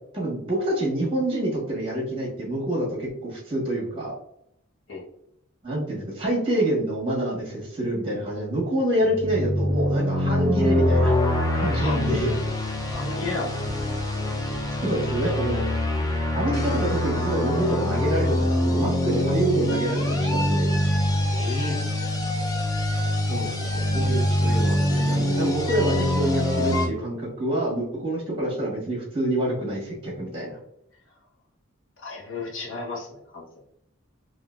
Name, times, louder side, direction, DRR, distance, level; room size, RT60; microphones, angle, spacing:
voice 1, 0.1-4.1 5.6-11.2 11.6-12.3 14.8-15.7 16.3-20.7 23.3-23.6 23.9-30.5, right 1 dB, 25° right, -3 dB, 1.2 m, -27 dB
sound 1, 9.0-26.9, left 1 dB, 20° left, 0.4 m, -24 dB
voice 2, 11.8-12.4 12.9-13.6 21.3-21.8 32.0-33.5, left 3 dB, 65° left, -3 dB, 0.9 m, -33 dB
3.7 x 2.5 x 2.3 m, 0.75 s
head